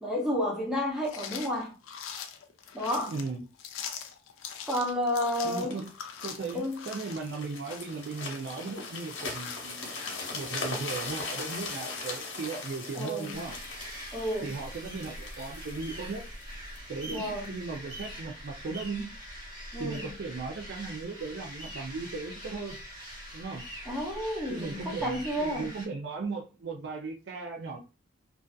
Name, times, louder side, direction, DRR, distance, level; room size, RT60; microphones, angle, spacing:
voice 1, 0.0-1.8 2.7-3.1 4.7-5.8 6.5-6.9 12.9-13.4 14.1-14.6 17.1-17.6 19.7-20.0 23.8-25.7, left 1 dB, 5° right, 0.6 m, -31 dB
sound 1, 1.0-13.6, left 7 dB, 90° left, 0.4 m, -44 dB
voice 2, 3.1-3.5 5.4-5.9 6.2-10.0 10.3-13.6 14.4-16.3 16.9-19.1 19.8-22.8 23.3-23.6 24.4-27.8, right 4 dB, 55° right, 0.4 m, -37 dB
sound 2, 5.7-17.6 18.2-18.3, left 3 dB, 75° left, 0.9 m, -40 dB
sound 3, 13.3-25.9, equal, 20° right, 1.0 m, -43 dB
2.5 x 2.3 x 2.3 m
head